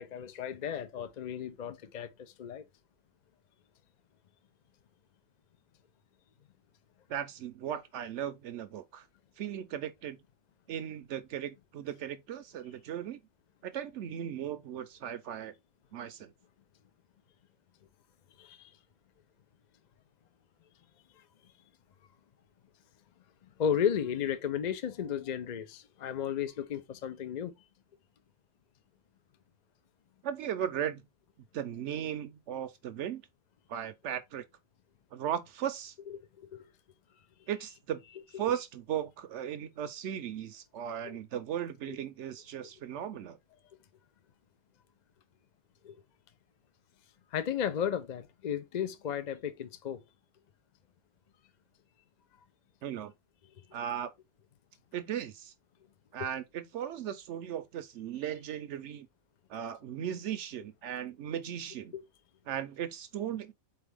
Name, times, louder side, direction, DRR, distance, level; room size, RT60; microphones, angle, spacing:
voice 1, 0.0-2.1 2.4-2.6 18.4-18.7 23.6-27.5 36.1-36.2 36.5-36.6 41.1-41.2 45.8-45.9 47.3-50.0 61.9-62.0, left 8 dB, 65° left, 0.4 m, -34 dB
voice 2, 7.1-9.0 9.4-10.2 10.7-13.2 13.6-15.5 15.9-16.3 30.2-31.0 31.5-33.2 33.7-34.4 35.1-35.9 37.5-38.0 38.4-43.4 52.8-53.1 53.7-54.1 54.9-55.5 56.1-59.1 59.5-61.9 62.5-63.5, right 10 dB, 65° right, 0.8 m, -37 dB
4.1 x 3.3 x 3.4 m
omnidirectional pair, 1.5 m